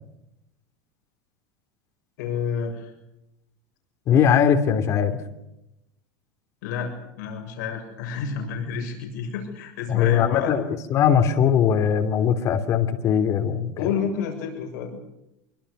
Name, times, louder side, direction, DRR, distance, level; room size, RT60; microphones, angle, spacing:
voice 1, 2.2-2.9 6.6-10.5 13.8-15.0, left 6 dB, 60° left, 2 dB, 7.1 m, -30 dB
voice 2, 4.1-5.1 9.9-13.9, left 8 dB, 30° left, 5 dB, 3.0 m, -20 dB
26.0 x 24.5 x 6.7 m, 0.87 s
supercardioid pair, 180°, 11 cm